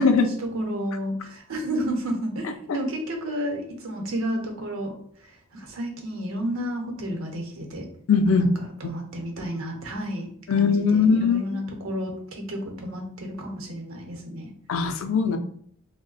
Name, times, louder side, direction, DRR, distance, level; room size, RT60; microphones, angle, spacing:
voice 1, 0.0-2.5 2.7-4.9 5.2-7.8 8.3-8.5 8.8-14.5, equal, 75° right, 2 dB, 0.8 m, -31 dB
voice 2, 8.1-8.5 10.5-11.4 14.7-15.4, left 5 dB, 70° left, 7 dB, 0.4 m, -20 dB
2.8 x 2.1 x 3.9 m, 0.63 s
head